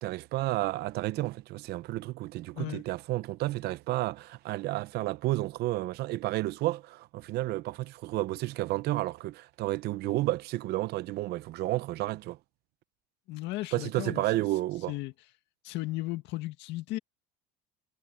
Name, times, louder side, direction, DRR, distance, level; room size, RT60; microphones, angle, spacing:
voice 1, 0.0-12.4 13.7-14.9, right 17 dB, 55° right, 0.7 m, -31 dB
voice 2, 13.3-14.2 14.9-15.1 15.6-17.0, left 18 dB, 65° left, 1.9 m, -35 dB
cardioid pair, 145°, 20 cm